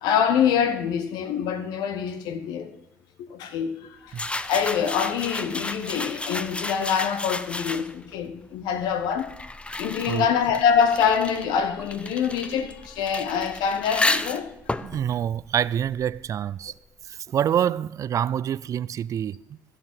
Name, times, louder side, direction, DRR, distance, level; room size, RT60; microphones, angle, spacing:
voice 1, 0.0-2.7 3.2-4.1 4.4-9.3 9.8-14.5, left 7 dB, 75° left, 1.1 m, -25 dB
sound 1, 4.1-8.1 8.9-16.3, left 2 dB, 15° left, 0.7 m, -32 dB
voice 2, 14.8-16.7 17.1-19.4, right 9 dB, 50° right, 0.3 m, -26 dB
14.5 x 4.9 x 7.4 m
hypercardioid pair, 55°, 7 cm